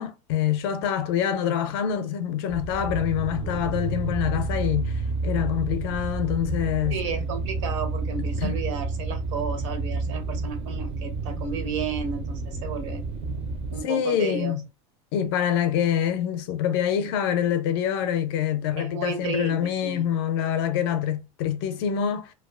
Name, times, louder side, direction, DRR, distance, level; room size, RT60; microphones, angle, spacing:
voice 1, 0.0-7.0 8.4-8.6 13.8-14.6 15.1-22.3, left 9 dB, 55° left, 0.4 m, -26 dB
sound 1, 2.5-13.8, right 3 dB, 30° right, 0.4 m, -30 dB
voice 2, 6.9-13.1 13.7-14.5 18.8-20.1, right 6 dB, 75° right, 0.8 m, -33 dB
2.4 x 2.2 x 2.3 m
supercardioid pair, 180°, 16 cm